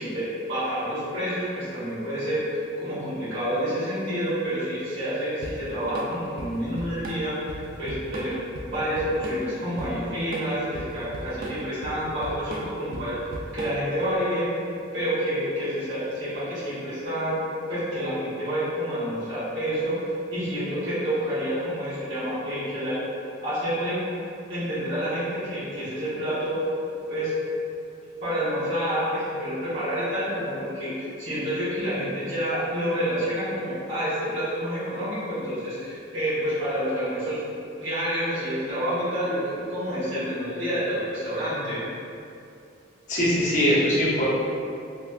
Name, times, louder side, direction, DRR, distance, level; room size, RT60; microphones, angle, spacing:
voice 1, 0.0-8.4 8.6-14.6 14.9-17.4 17.7-23.0 23.4-24.0 24.5-26.7 27.1-27.3 28.2-37.4 37.8-41.8, equal, 70° right, -14 dB, 1.5 m, -28 dB
Drum kit / Drum, 5.4-14.0, right 1 dB, 50° right, 0.3 m, -37 dB
voice 2, 43.1-44.2, equal, 40° left, -8 dB, 0.7 m, -21 dB
3.2 x 2.3 x 2.3 m, 2.6 s
head